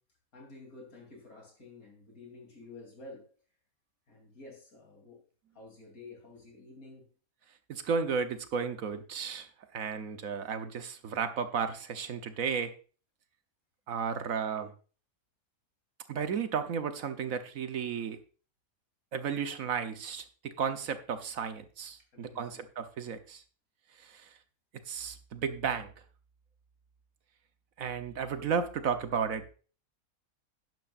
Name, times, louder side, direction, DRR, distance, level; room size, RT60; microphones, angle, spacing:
voice 1, 0.3-3.3 4.1-5.2 5.5-7.1 22.1-22.6, left 3 dB, 85° left, 1 dB, 4.0 m, -51 dB
voice 2, 7.7-9.5 9.7-12.7 13.9-14.7 16.1-18.2 19.1-23.4 24.0-24.3 24.9-25.9 27.8-29.5, right 6 dB, 75° right, 9 dB, 1.4 m, -33 dB
11.5 x 11.0 x 2.6 m, 0.37 s
omnidirectional pair, 1.5 m